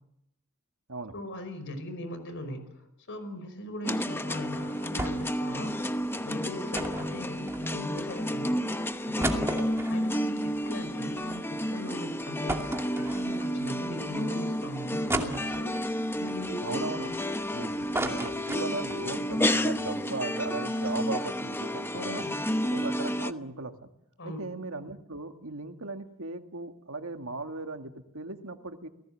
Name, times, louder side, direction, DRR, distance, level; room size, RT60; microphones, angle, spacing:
voice 1, 1.1-5.8 6.2-8.6 9.1-15.8 16.1-17.2 21.9-22.4 24.2-24.5, left 1 dB, 60° left, 10 dB, 5.2 m, -39 dB
sound 1, 3.8-23.3, equal, 10° left, 0.9 m, -31 dB
sound 2, 5.0-5.4 5.7-5.8 6.7-8.0 8.5-8.6 9.0-11.4 11.8-11.9 12.5-13.6 14.1-14.2 15.1-15.9 16.5-17.5 17.7-19.1 19.4-19.5 19.7-20.0, right 1 dB, 10° right, 2.6 m, -34 dB
voice 2, 16.6-17.1 17.5-22.3 22.6-23.7 24.2-28.9, right 3 dB, 70° right, 6 dB, 2.2 m, -37 dB
29.5 x 19.5 x 7.7 m, 0.83 s
head